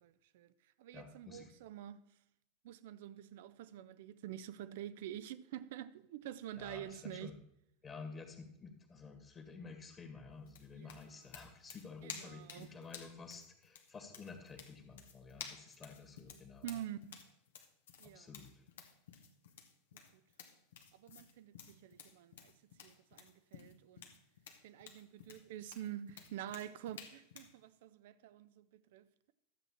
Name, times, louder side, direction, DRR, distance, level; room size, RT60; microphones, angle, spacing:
voice 1, 0.0-0.5 0.8-2.0 2.6-7.3 10.7-11.0 12.0-12.8 16.6-17.2 18.0-18.3 19.9-20.2 20.9-22.5 22.8-24.1 24.6-29.1, right 11 dB, 60° right, 0.5 m, -47 dB
voice 2, 0.9-1.5 6.6-7.3 7.8-16.7 18.0-18.6, left 4 dB, 25° left, 1.8 m, -51 dB
sound 1, 10.5-27.6, left 7 dB, 65° left, 1.1 m, -54 dB
12.0 x 7.8 x 4.3 m
figure-of-eight pair, 85°, 0 cm